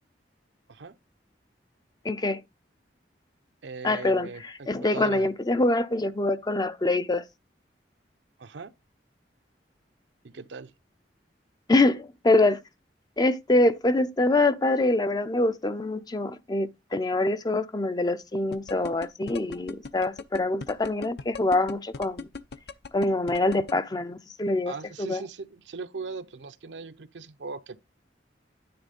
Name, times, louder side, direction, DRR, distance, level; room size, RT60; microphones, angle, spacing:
voice 1, 2.0-2.4 3.8-4.3 4.7-7.2 11.7-12.6 13.2-22.3 22.9-25.2, left 2 dB, 20° left, 0.5 m, -25 dB
voice 2, 3.6-5.3 8.4-8.7 10.2-10.7 24.7-27.8, right 4 dB, 80° right, 0.7 m, -39 dB
sound 1, 18.5-23.7, left 4 dB, 60° left, 0.6 m, -37 dB
9.6 x 3.6 x 5.2 m
head